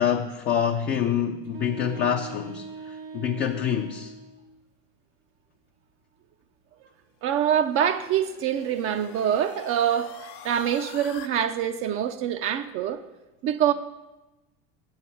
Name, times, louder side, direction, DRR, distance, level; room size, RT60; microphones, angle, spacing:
voice 1, 0.0-4.1, left 8 dB, 35° left, 0.5 m, -26 dB
sound 1, 1.4-4.4, right 4 dB, 80° right, 1.9 m, -40 dB
voice 2, 7.2-10.1 10.4-13.0 13.4-13.7, right 9 dB, 45° right, 0.5 m, -25 dB
sound 2, 7.3-11.3, left 10 dB, 75° left, 0.9 m, -45 dB
7.5 x 6.4 x 5.7 m
supercardioid pair, 110°, 31 cm